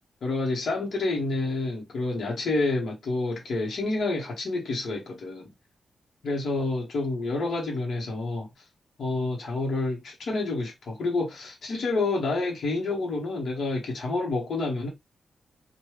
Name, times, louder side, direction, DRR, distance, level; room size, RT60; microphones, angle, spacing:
voice 1, 0.2-5.5 6.2-8.5 9.0-14.9, left 3 dB, 60° left, 1.0 m, -28 dB
3.0 x 2.2 x 3.1 m
wide cardioid pair, 165°, 0 cm